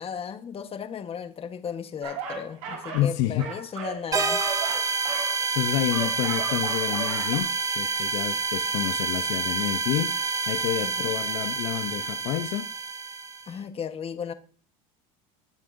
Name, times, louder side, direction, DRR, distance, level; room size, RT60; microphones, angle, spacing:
voice 1, 0.0-4.4 10.8-11.1 13.5-14.3, left 7 dB, 30° left, 1.3 m, -35 dB
sound 1, 2.0-3.1 3.4-7.4, right 5 dB, 75° right, 4.7 m, -36 dB
voice 2, 2.9-3.5 5.2-12.7, left 13 dB, 70° left, 0.7 m, -29 dB
sound 2, 4.1-13.5, right 4 dB, 20° right, 1.1 m, -28 dB
19.5 x 7.4 x 2.6 m
supercardioid pair, 100°, 18 cm